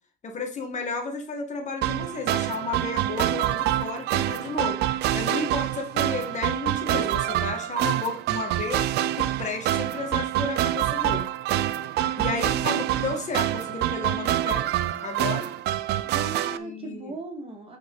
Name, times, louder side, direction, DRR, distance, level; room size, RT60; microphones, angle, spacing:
voice 1, 0.2-8.9 9.1-11.3 12.2-14.7 15.0-15.5 16.6-17.1, left 4 dB, 45° left, 4 dB, 1.8 m, -33 dB
sound 1, 1.8-16.6, right 13 dB, 80° right, 0.6 m, -26 dB
voice 2, 12.2-12.8 16.0-17.8, right 2 dB, 35° right, 2 dB, 2.5 m, -38 dB
9.3 x 4.8 x 4.0 m, 0.38 s
cardioid pair, 110°, 17 cm